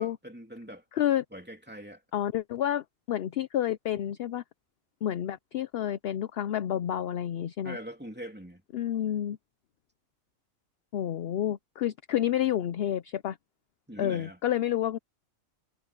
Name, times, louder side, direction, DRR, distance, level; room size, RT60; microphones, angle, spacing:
voice 1, 0.0-0.8 1.3-2.0 7.6-8.6 13.9-14.4, equal, 5° right, 2.8 m, -42 dB
voice 2, 0.9-1.2 2.1-4.4 5.0-7.8 8.7-9.4 10.9-13.4 14.0-15.0, left 11 dB, 60° left, 0.6 m, -29 dB
omnidirectional pair, 1.4 m